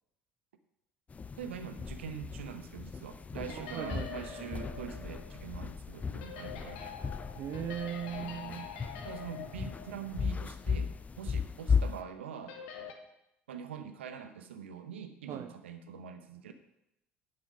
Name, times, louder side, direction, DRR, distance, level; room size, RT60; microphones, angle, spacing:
sound 1, 1.1-12.0, left 6 dB, 20° left, 0.4 m, -36 dB
voice 1, 1.4-7.0 8.4-8.6 9.0-12.6 13.5-16.5, right 7 dB, 75° right, 9 dB, 0.8 m, -44 dB
sound 2, 3.5-10.6 10.8-10.9 12.5-12.9, left 7 dB, 65° left, 1.2 m, -46 dB
voice 2, 3.5-4.5 7.3-8.7 15.3-15.5, right 10 dB, 45° right, 10 dB, 0.5 m, -39 dB
9.2 x 7.5 x 5.3 m, 0.83 s
figure-of-eight pair, 60°, 6 cm